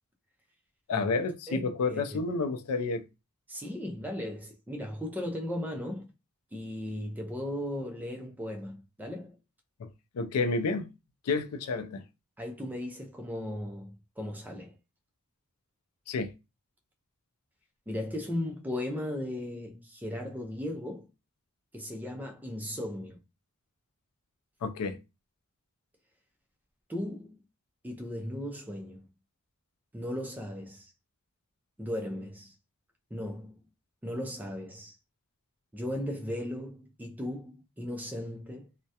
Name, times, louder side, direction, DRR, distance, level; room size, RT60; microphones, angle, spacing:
voice 1, 0.9-3.1 9.8-9.9 10.1-10.9 11.3-12.0 16.1-16.3 24.6-25.0, left 4 dB, 80° left, 0.4 m, -30 dB
voice 2, 1.5-2.0 3.5-6.1 6.5-9.4 12.4-14.7 17.9-21.1 21.7-23.2 26.9-27.4 27.8-29.0 29.9-30.9 31.8-32.5 33.1-33.6 34.0-34.9 35.7-38.7, left 1 dB, 10° right, 0.4 m, -37 dB
2.2 x 2.0 x 2.7 m
head